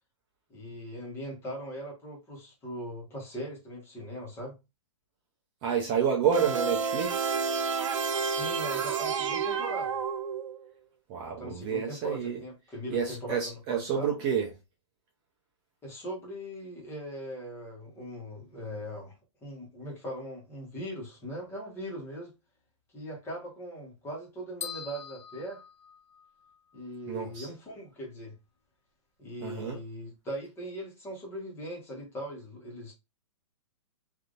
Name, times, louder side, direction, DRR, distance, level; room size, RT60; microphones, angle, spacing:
voice 1, 0.5-4.5 8.3-10.0 11.4-14.1 15.8-19.1 19.4-22.3 22.9-25.6 26.7-28.3 29.2-32.9, equal, 15° left, 1.3 m, -40 dB
voice 2, 5.6-7.4 11.1-12.4 12.9-14.5 27.1-27.5 29.4-29.8, right 7 dB, 25° right, 0.7 m, -29 dB
sound 1, 6.3-10.7, right 5 dB, 85° right, 0.7 m, -30 dB
sound 2, 24.6-26.5, left 8 dB, 70° left, 0.6 m, -42 dB
3.4 x 2.7 x 2.5 m
hypercardioid pair, 155°, 16 cm